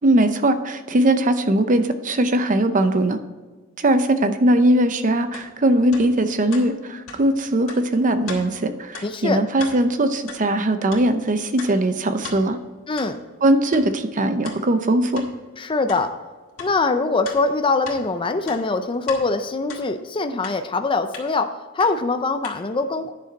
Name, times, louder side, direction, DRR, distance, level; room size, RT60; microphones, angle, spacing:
voice 1, 0.0-3.2 3.8-12.6 13.4-15.2, right 1 dB, 40° right, 10 dB, 0.7 m, -20 dB
sound 1, 5.3-5.5 5.9-6.1 6.5-6.7 7.1-7.2 7.7-7.8 8.3-8.4 8.9-9.1 9.5-9.8 10.3-10.4 10.9-11.1 11.6-11.7 12.2-12.4 13.0-13.1 13.7-13.8 14.4-14.6 15.1-15.3 15.9-16.0 16.6-16.7 17.2-18.0 18.4-19.2 19.7-19.8 20.4-20.6 21.1-21.3 21.8-21.9 22.4-22.6, left 5 dB, 70° left, 2.0 m, -36 dB
voice 2, 9.0-9.4 12.9-13.2 15.6-16.1 16.6-21.5 21.7-23.1, left 3 dB, 25° left, 8 dB, 0.5 m, -23 dB
10.5 x 6.7 x 4.0 m, 1.4 s
head